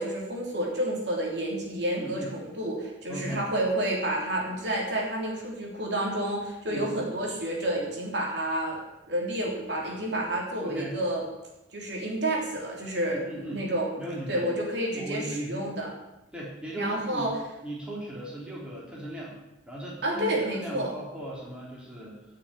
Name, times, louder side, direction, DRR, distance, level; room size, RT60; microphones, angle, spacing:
voice 1, 0.0-8.8 9.1-11.2 11.7-13.9 14.3-15.9 16.8-17.3 20.0-20.9, right 1 dB, 60° right, -2 dB, 3.2 m, -30 dB
voice 2, 1.9-2.3 3.1-3.4 6.7-7.0 10.6-10.9 13.1-13.6 14.0-14.5 14.9-15.7 16.3-17.3 17.6-19.3 19.7-22.2, right 1 dB, 5° right, -5 dB, 3.3 m, -37 dB
11.0 x 6.7 x 8.8 m, 0.95 s
head